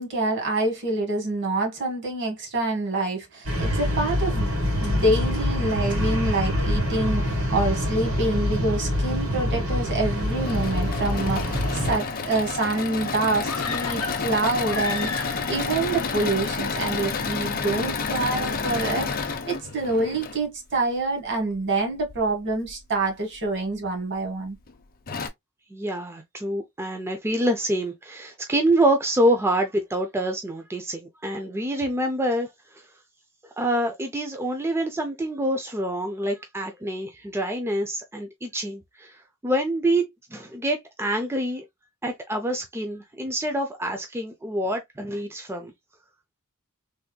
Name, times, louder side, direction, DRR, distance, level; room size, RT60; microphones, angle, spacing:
voice 1, 0.0-24.6, right 2 dB, 55° right, 1.2 m, -26 dB
sound 1, 3.5-12.0, left 1 dB, 85° right, 2.1 m, -25 dB
Engine / Mechanisms, 10.1-20.4 22.0-22.7 23.3-23.4 23.7-23.8 24.7-24.8 25.1-25.3, left 4 dB, 40° left, 0.6 m, -30 dB
sound 2, 13.4-15.7 16.0-16.1, left 4 dB, 70° left, 0.8 m, -33 dB
voice 2, 25.7-32.9 33.6-41.6 42.0-45.7, right 1 dB, 10° right, 0.4 m, -26 dB
3.3 x 2.9 x 2.2 m
head